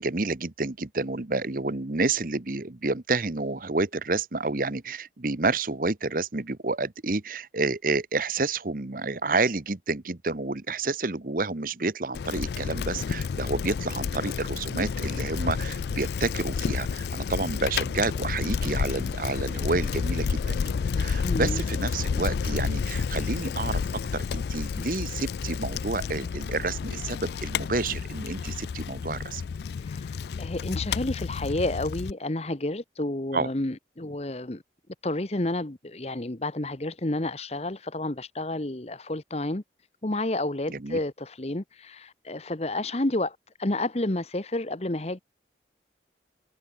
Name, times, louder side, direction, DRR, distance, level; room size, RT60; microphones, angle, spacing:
voice 1, 0.0-23.8 24.1-29.4 33.3-33.5 40.7-41.0, right 3 dB, 50° right, 1.1 m, -29 dB
Bicycle, 12.1-32.1, left 6 dB, 60° left, 0.3 m, -30 dB
voice 2, 21.2-21.6 29.8-34.6 35.0-39.6 40.0-45.2, left 1 dB, 35° left, 1.1 m, -30 dB
head